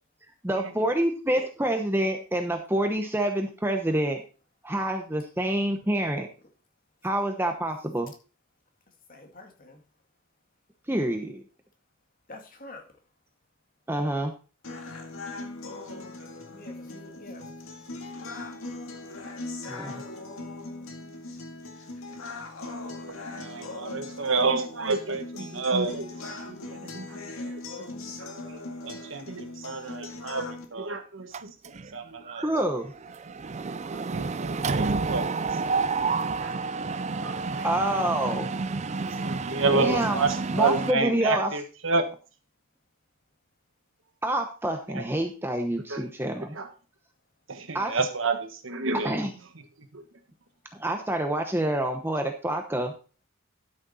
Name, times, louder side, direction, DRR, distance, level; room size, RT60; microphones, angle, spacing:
voice 1, 0.4-4.2 4.6-6.3 7.0-8.1 10.9-11.4 13.9-14.3 19.7-20.0 32.4-32.9 37.6-38.5 39.7-40.2 40.5-41.5 44.2-46.6 47.7-48.0 49.0-49.3 50.7-52.9, right 1 dB, 10° right, 0.9 m, -27 dB
voice 2, 9.1-9.8 12.3-12.9 16.5-17.5, left 2 dB, 45° left, 2.1 m, -46 dB
sound 1, 14.6-30.7, left 2 dB, 85° left, 2.0 m, -39 dB
voice 3, 23.3-26.1 26.5-26.6 26.9-27.1 27.4-27.6 28.4-31.5 31.9-32.4 33.9-35.3 36.4-36.5 36.9-37.7 39.3-42.0 44.9-45.0 45.9-46.0 46.5-46.7 47.5-49.1 49.9-50.0, right 3 dB, 70° right, 1.5 m, -29 dB
Mechanisms, 31.3-31.9 32.3-32.5 32.7-40.9, right 4 dB, 35° right, 0.4 m, -30 dB
12.5 x 6.6 x 4.2 m
head